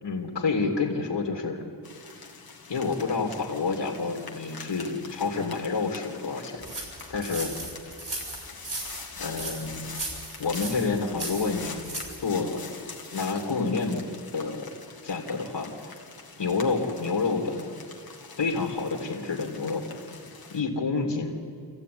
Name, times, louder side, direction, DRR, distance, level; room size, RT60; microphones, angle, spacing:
voice 1, 0.0-1.6 2.7-6.6 7.1-7.5 9.2-9.9 10.4-11.9 12.2-12.6 13.1-14.0 14.3-14.7 15.0-15.7 16.4-17.8 18.4-19.9 20.5-21.4, left 4 dB, 75° left, 1 dB, 2.8 m, -28 dB
sound 1, 1.8-20.6, left 4 dB, 55° left, 2.1 m, -44 dB
sound 2, 6.6-12.2, right 2 dB, 50° right, 5.8 m, -36 dB
26.5 x 15.0 x 9.5 m, 2.3 s
wide cardioid pair, 120°, 42 cm